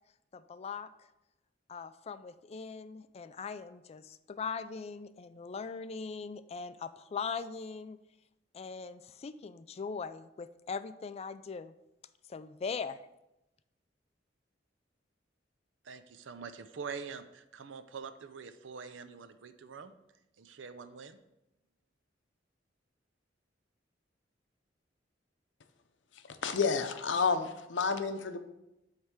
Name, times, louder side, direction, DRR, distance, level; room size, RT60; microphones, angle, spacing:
voice 1, 0.3-0.9 1.7-8.0 8.5-11.7 12.3-13.0, left 5 dB, 35° left, 13 dB, 0.3 m, -40 dB
voice 2, 15.8-19.9 20.4-21.2, right 5 dB, 85° right, 10 dB, 0.5 m, -45 dB
voice 3, 26.3-28.4, left 5 dB, 80° left, 9 dB, 0.6 m, -30 dB
8.0 x 3.3 x 5.8 m, 0.90 s
head